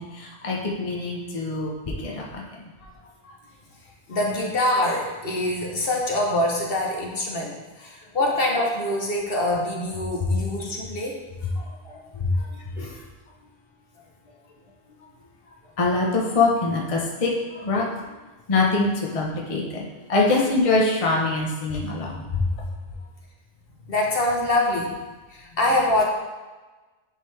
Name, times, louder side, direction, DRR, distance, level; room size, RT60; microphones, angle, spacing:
voice 1, 0.0-1.7 2.0-2.4 3.2-3.3 11.8-12.0 15.8-17.3 17.6-17.9 18.5-19.8 20.1-22.4, left 3 dB, 30° left, -2 dB, 0.9 m, -23 dB
voice 2, 4.1-11.2 12.8-13.0 20.3-20.5 23.9-24.9 25.3-26.0, left 1 dB, 55° left, -1 dB, 1.2 m, -25 dB
9.6 x 3.8 x 3.3 m, 1.2 s
omnidirectional pair, 1.2 m